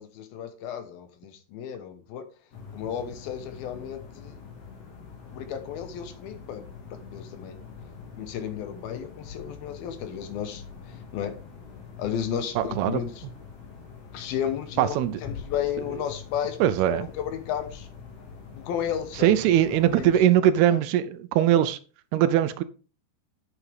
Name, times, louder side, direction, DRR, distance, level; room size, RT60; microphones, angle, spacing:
voice 1, 0.0-2.2 2.7-4.4 5.3-6.6 7.1-7.6 8.2-11.3 12.0-13.2 14.1-17.9 18.5-19.4 19.7-20.8, left 9 dB, 75° left, 2.7 m, -33 dB
sound 1, 2.5-20.2, left 5 dB, 45° left, 2.5 m, -44 dB
voice 2, 12.6-13.0 14.8-15.2 16.6-17.1 19.2-21.8 22.1-22.6, right 11 dB, 80° right, 2.5 m, -21 dB
8.3 x 7.9 x 3.5 m
omnidirectional pair, 4.8 m